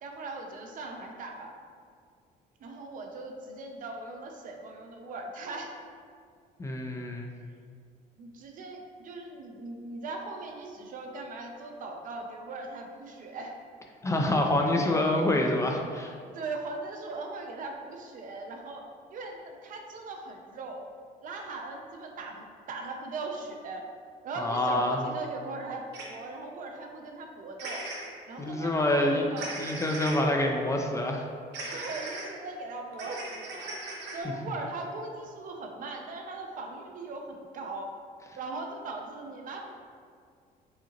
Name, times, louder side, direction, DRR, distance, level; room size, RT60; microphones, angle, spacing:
voice 1, 0.0-1.5 2.6-5.8 8.2-13.5 16.3-20.8 21.2-23.9 24.2-27.9 28.3-29.6 31.7-33.8 34.1-38.0 38.4-39.7, right 3 dB, 55° right, 2 dB, 0.5 m, -39 dB
voice 2, 6.6-7.3 14.0-16.1 24.4-25.0 28.4-29.3 29.6-31.3, left 1 dB, 15° left, 1 dB, 0.3 m, -26 dB
sound 1, 25.9-26.0 27.6-28.1 29.4-30.2 31.5-32.2 32.9-34.2, right 2 dB, 85° right, 0.9 m, -38 dB
4.9 x 2.8 x 2.9 m, 2.2 s
cardioid pair, 110°, 17 cm